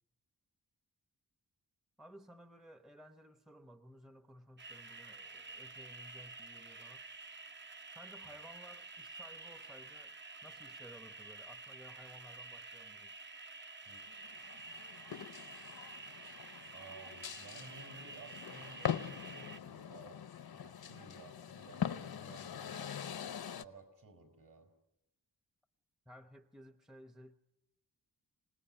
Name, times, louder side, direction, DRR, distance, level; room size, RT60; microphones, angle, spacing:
voice 1, 2.0-7.0 7.9-13.1 26.1-27.4, equal, ahead, 0.9 m, -57 dB
sound 1, 4.6-19.6, right 3 dB, 30° right, 0.9 m, -50 dB
sound 2, 14.1-23.6, left 8 dB, 70° left, 0.9 m, -43 dB
voice 2, 16.7-20.3 20.5-24.7, right 3 dB, 55° right, 4.8 m, -56 dB
26.5 x 19.0 x 9.9 m
wide cardioid pair, 150°, 38 cm